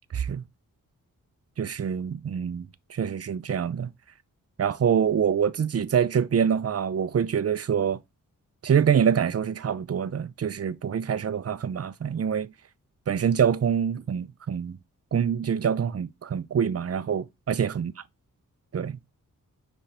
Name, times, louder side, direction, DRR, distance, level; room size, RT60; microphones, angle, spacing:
voice 1, 0.1-0.4 1.6-3.9 4.6-8.0 8.6-12.5 13.1-14.8 15.1-17.9 18.7-19.0, right 7 dB, 45° right, 0.6 m, -25 dB
5.5 x 5.3 x 4.3 m
cardioid pair, 85°, 33 cm